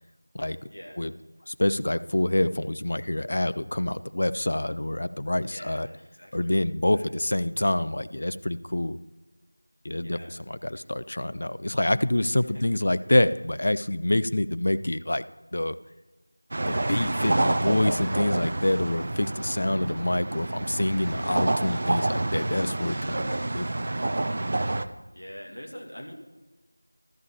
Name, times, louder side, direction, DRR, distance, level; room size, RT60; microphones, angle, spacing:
voice 1, 0.7-1.0 5.5-6.5 6.9-7.2 10.0-10.3 12.2-12.7 19.5-19.8 25.1-26.1, equal, 70° left, 1 dB, 2.3 m, -45 dB
voice 2, 1.5-5.9 6.3-9.0 9.8-15.2 15.5-15.8 16.6-23.7, left 1 dB, 45° left, 14 dB, 0.4 m, -26 dB
sound 1, 16.5-24.9, right 2 dB, 30° right, 0.4 m, -28 dB
13.0 x 5.6 x 7.1 m, 1.2 s
figure-of-eight pair, 175°, 0 cm